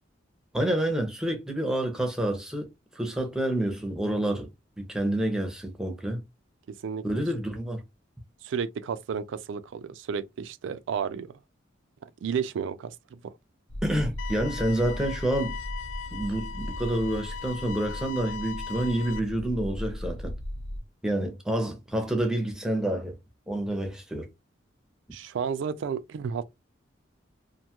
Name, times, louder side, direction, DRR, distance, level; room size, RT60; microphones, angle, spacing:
voice 1, 0.5-2.7 2.9-4.5 4.8-6.2 7.0-7.8 13.8-15.6 16.1-20.3 21.0-23.2 23.5-24.3, right 1 dB, 5° right, 0.6 m, -28 dB
voice 2, 6.8-7.2 8.4-11.3 12.2-13.0 13.2-13.3 25.1-26.4, right 6 dB, 70° right, 0.3 m, -32 dB
sound 1, 13.7-20.8, equal, 35° left, 0.8 m, -37 dB
sound 2, 14.2-19.2, left 7 dB, 90° left, 0.3 m, -39 dB
2.5 x 2.2 x 2.9 m
head